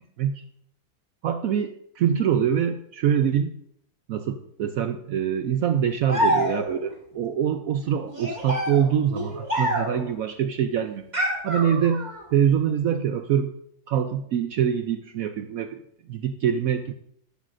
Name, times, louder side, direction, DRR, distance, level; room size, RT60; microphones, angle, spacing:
voice 1, 1.2-3.5 4.1-11.1 11.4-13.5 13.9-15.8 16.1-16.9, right 8 dB, 70° right, 9 dB, 0.8 m, -24 dB
sound 1, 6.1-6.9 8.1-10.1 11.1-12.2, equal, 25° right, 2.3 m, -27 dB
12.5 x 11.5 x 2.6 m, 0.69 s
omnidirectional pair, 2.0 m